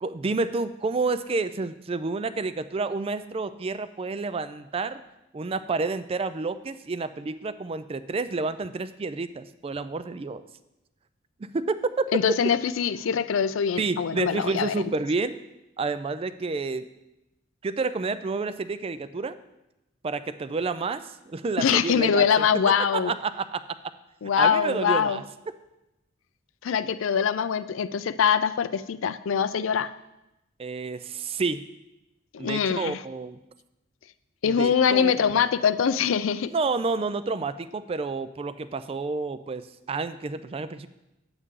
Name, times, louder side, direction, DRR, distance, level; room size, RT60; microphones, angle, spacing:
voice 1, 0.0-5.0 5.3-10.4 11.4-11.8 13.8-15.4 15.8-16.9 17.6-19.4 20.0-22.5 22.9-23.6 24.4-25.2 30.6-31.6 32.4-33.4 34.4-35.3 36.5-40.9, right 3 dB, 30° right, 12 dB, 0.3 m, -29 dB
voice 2, 12.1-14.7 21.6-23.1 24.2-25.2 26.6-29.9 32.3-33.0 34.4-36.5, left 7 dB, 70° left, 14 dB, 0.4 m, -23 dB
9.6 x 8.0 x 3.7 m, 0.93 s
head